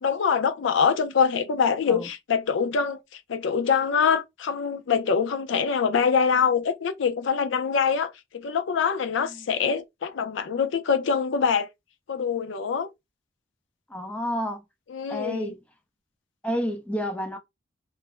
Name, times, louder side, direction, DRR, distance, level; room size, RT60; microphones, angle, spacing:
voice 1, 0.0-11.7 12.1-12.9 14.9-15.5, left 6 dB, 75° left, 0.4 m, -24 dB
voice 2, 13.9-14.6 15.1-15.6 16.4-17.4, equal, 5° left, 0.5 m, -30 dB
2.4 x 2.0 x 3.0 m
head